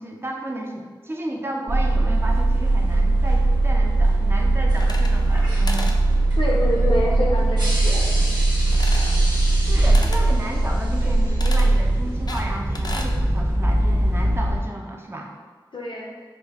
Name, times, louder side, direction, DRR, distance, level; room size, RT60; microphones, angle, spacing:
voice 1, 0.0-6.0 9.5-15.3, right 1 dB, 30° right, 0 dB, 0.5 m, -33 dB
sound 1, 1.7-14.6, right 2 dB, 60° right, 1.2 m, -20 dB
sound 2, 4.7-5.4 5.7-6.0 8.7-9.2 9.9-10.3 11.4-11.7 12.3-13.1, left 2 dB, 55° left, 0.4 m, -34 dB
voice 2, 6.4-8.1 15.7-16.1, left 1 dB, 90° left, -1 dB, 0.6 m, -26 dB
4.9 x 2.1 x 3.4 m, 1.5 s
wide cardioid pair, 70°, 8 cm